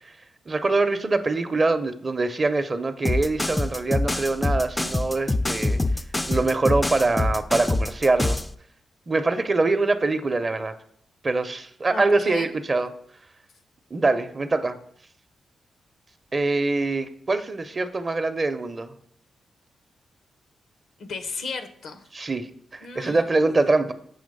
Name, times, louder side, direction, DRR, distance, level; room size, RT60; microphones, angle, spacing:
voice 1, 0.5-5.8 6.3-8.4 9.1-10.7 11.2-12.9 13.9-14.8 16.3-18.9 22.1-23.9, right 3 dB, 40° right, 10 dB, 0.6 m, -24 dB
sound 1, 3.1-8.5, left 2 dB, 20° left, 0.4 m, -25 dB
voice 2, 11.9-12.5 21.0-22.0 22.8-23.2, left 4 dB, 75° left, 7 dB, 0.7 m, -35 dB
7.1 x 3.0 x 5.3 m, 0.64 s
supercardioid pair, 55°, 0 cm